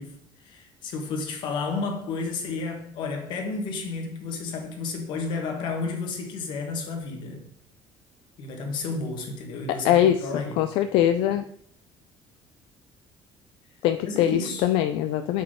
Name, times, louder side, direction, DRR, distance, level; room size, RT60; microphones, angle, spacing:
voice 1, 0.0-7.5 8.4-10.7 14.0-14.7, left 4 dB, 60° left, 1.4 m, -32 dB
voice 2, 9.8-10.2 10.6-11.4 13.8-15.4, left 11 dB, 85° left, 0.4 m, -22 dB
5.6 x 4.1 x 4.9 m
cardioid pair, 160°, 9 cm